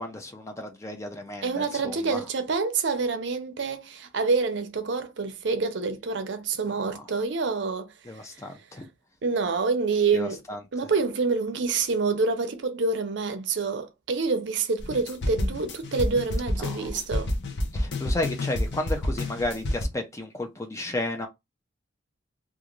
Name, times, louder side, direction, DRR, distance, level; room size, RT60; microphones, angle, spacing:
voice 1, 0.0-2.2 7.0-7.1 8.0-8.9 10.1-10.6 16.6-16.9 17.7-21.3, left 2 dB, 15° left, 0.4 m, -33 dB
voice 2, 1.4-7.9 9.2-10.4 10.7-17.3, right 4 dB, 60° right, 0.5 m, -27 dB
sound 1, 14.8-19.9, left 1 dB, 55° left, 0.6 m, -29 dB
2.5 x 2.4 x 3.0 m
head